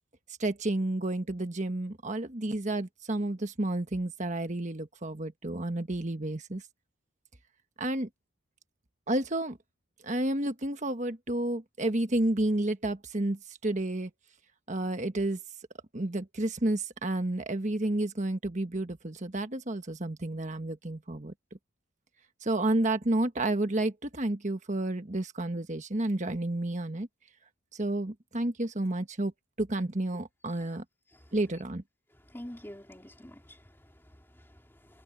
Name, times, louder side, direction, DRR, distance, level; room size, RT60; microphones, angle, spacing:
voice 1, 0.4-6.6 7.8-8.1 9.1-9.6 10.0-14.1 14.7-15.4 15.9-21.3 22.4-27.1 27.7-29.3 29.6-30.8 31.3-31.8, right 1 dB, 35° right, 1.4 m, -30 dB
voice 2, 32.3-35.0, equal, 10° left, 2.6 m, -48 dB
head